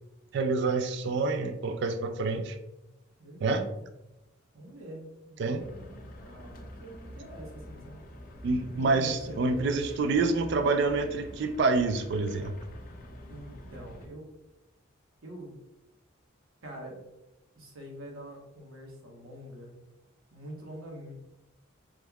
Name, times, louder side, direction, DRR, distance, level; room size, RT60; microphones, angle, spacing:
voice 1, 0.3-2.6 3.4-3.7 5.4-5.6 8.4-12.6, right 3 dB, 55° right, 8 dB, 0.3 m, -27 dB
voice 2, 3.2-3.7 4.5-8.0 8.7-9.8 13.3-14.3 15.2-15.6 16.6-17.0 17.5-19.8 20.3-21.1, right 1 dB, 90° right, -1 dB, 0.9 m, -45 dB
sound 1, 5.6-14.1, equal, 45° left, 0.4 m, -46 dB
3.5 x 3.0 x 2.2 m, 0.94 s
head